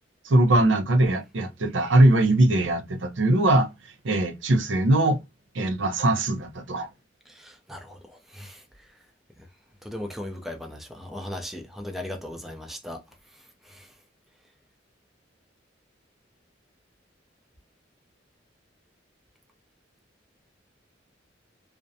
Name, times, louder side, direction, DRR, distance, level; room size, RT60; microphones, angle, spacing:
voice 1, 0.2-3.7 4.0-5.2 5.5-6.9, right 1 dB, 90° right, 0.6 m, -21 dB
voice 2, 7.3-8.6 9.4-9.5 9.8-13.0 13.6-13.9, left 1 dB, ahead, 0.4 m, -38 dB
2.5 x 2.1 x 2.5 m
head